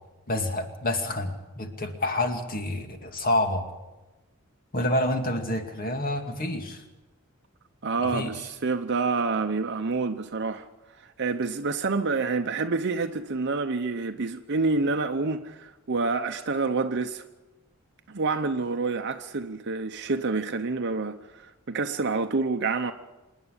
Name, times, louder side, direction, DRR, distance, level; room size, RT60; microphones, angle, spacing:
voice 1, 0.3-3.6 4.7-6.8 8.1-8.3, left 1 dB, 40° left, 2.3 m, -28 dB
voice 2, 7.8-10.7 11.0-17.2 18.1-22.9, right 4 dB, 55° right, 0.8 m, -28 dB
27.0 x 10.0 x 10.0 m
head